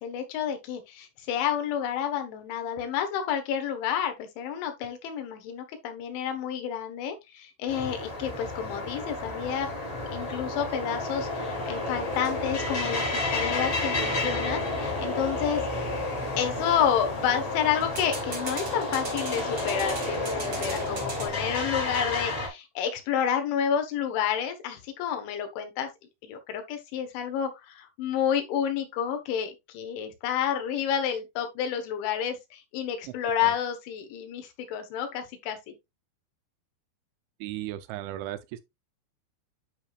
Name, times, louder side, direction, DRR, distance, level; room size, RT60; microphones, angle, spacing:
voice 1, 0.0-9.7 10.1-15.9 16.4-25.9 26.2-35.7, left 8 dB, 85° left, 3.7 m, -30 dB
sound 1, 7.7-22.5, left 2 dB, 40° left, 3.8 m, -31 dB
sound 2, 14.8-15.0 17.8-21.3, right 3 dB, 65° right, 1.0 m, -39 dB
voice 2, 37.4-38.6, right 14 dB, 85° right, 3.1 m, -36 dB
10.0 x 4.9 x 2.4 m
omnidirectional pair, 5.3 m